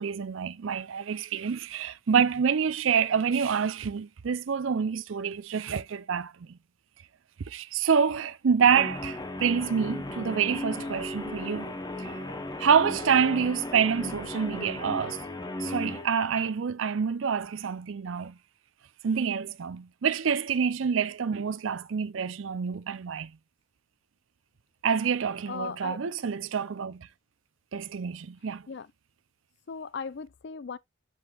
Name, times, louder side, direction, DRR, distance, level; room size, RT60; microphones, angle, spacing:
voice 1, 0.0-6.6 7.5-12.2 12.6-15.2 15.6-18.4 19.0-23.3 24.8-27.1 27.7-28.6, right 6 dB, 70° right, 0.5 m, -27 dB
Guitar, 8.7-16.1, left 2 dB, 20° left, 0.8 m, -36 dB
voice 2, 25.5-26.0 28.7-28.9 29.7-30.8, left 5 dB, 55° left, 0.4 m, -37 dB
7.9 x 5.2 x 2.3 m
head